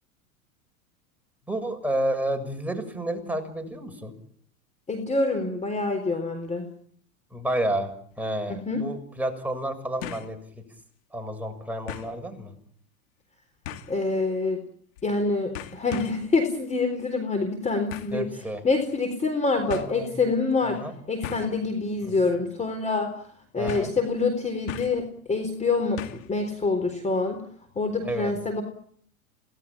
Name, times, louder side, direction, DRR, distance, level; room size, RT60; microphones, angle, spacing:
voice 1, 1.5-4.1 7.3-7.9 8.2-10.4 11.1-12.6 18.1-18.6 19.7-20.2 20.6-20.9 22.2-22.3 23.6-23.9 28.0-28.3, right 1 dB, 5° right, 4 dB, 6.6 m, -30 dB
voice 2, 4.9-6.7 8.5-8.8 13.9-14.6 15.0-18.3 18.6-20.8 21.1-23.2 23.5-27.4 27.8-28.6, left 3 dB, 15° left, 6 dB, 4.0 m, -26 dB
sound 1, 8.1-8.2 10.0-10.4 10.8-10.9 11.9-12.2 13.6-14.0 15.0-15.2 15.5-16.3 17.9-18.2 19.2-19.3 19.7-19.9 21.2-21.6 22.1-22.3 22.6-22.7 23.7-24.0 24.7-25.1 26.0-26.3 26.6-26.7, left 9 dB, 65° left, 2.8 m, -38 dB
28.5 x 18.5 x 9.0 m, 0.64 s
hypercardioid pair, 105°, 42 cm